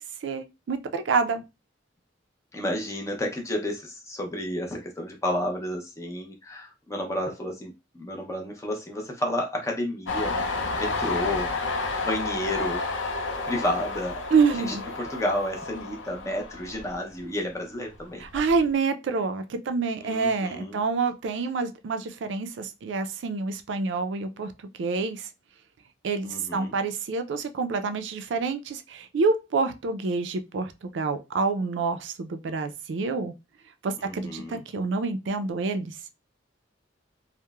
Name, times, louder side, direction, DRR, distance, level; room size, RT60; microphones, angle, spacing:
voice 1, 0.2-1.4 14.3-14.8 18.2-24.5 24.8-25.3 26.0-33.3 33.8-36.0, right 4 dB, 75° right, 0.4 m, -27 dB
voice 2, 2.5-10.4 10.8-11.5 12.0-12.8 13.5-14.1 14.6-14.7 15.0-18.2 20.0-20.8 26.2-26.7 34.0-34.6, left 1 dB, 15° left, 0.5 m, -31 dB
Train, 10.1-17.5 17.9-18.7, left 3 dB, 85° left, 0.5 m, -31 dB
2.9 x 2.1 x 2.3 m
head